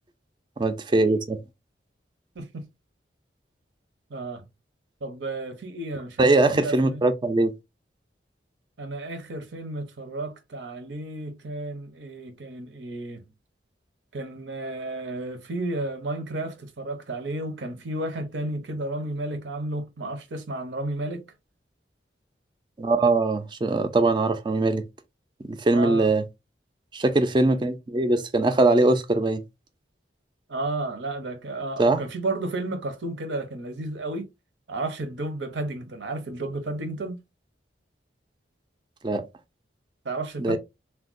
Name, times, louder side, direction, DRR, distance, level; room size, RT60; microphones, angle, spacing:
voice 1, 0.6-1.4 6.2-7.5 22.8-24.8 25.5-26.2 26.9-29.4 31.8-32.0 39.0-39.2 40.4-40.6, right 2 dB, 25° right, 0.4 m, -21 dB
voice 2, 4.1-4.5 5.0-7.0 8.8-13.2 14.1-21.2 25.7-26.1 30.5-34.3 34.7-37.2 40.0-40.6, right 2 dB, 75° right, 0.7 m, -32 dB
3.4 x 2.2 x 2.5 m
head